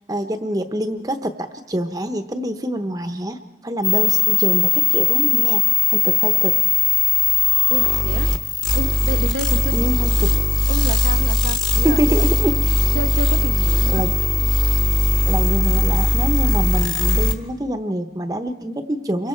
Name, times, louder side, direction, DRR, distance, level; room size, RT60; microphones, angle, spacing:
voice 1, 0.1-6.6 9.7-10.3 11.8-13.0 13.9-14.1 15.3-19.3, right 1 dB, 20° right, 7 dB, 0.8 m, -25 dB
sound 1, 3.8-17.3, left 3 dB, 25° left, 1.1 m, -19 dB
voice 2, 7.7-8.3 8.7-10.4 10.7-12.2 12.9-14.0, right 2 dB, 85° right, 8 dB, 1.0 m, -30 dB
28.0 x 23.5 x 4.4 m, 1.0 s
head